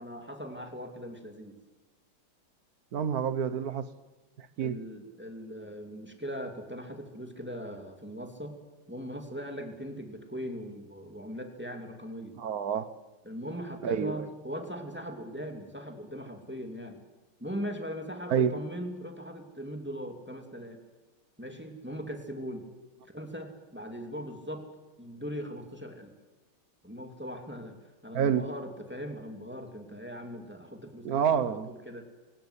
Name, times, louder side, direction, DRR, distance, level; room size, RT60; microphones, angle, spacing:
voice 1, 0.0-1.5 4.6-8.6 8.9-12.4 13.2-17.0 17.4-20.8 21.4-22.7 23.1-24.7 25.0-26.1 26.8-27.8 28.0-31.4 31.7-32.1, equal, 5° right, 2.9 m, -40 dB
voice 2, 2.9-3.9 4.4-4.8 12.4-13.0 13.8-14.3 18.3-18.5 28.1-28.5 31.0-31.7, right 7 dB, 50° right, 1.4 m, -28 dB
23.0 x 18.0 x 8.4 m
omnidirectional pair, 2.4 m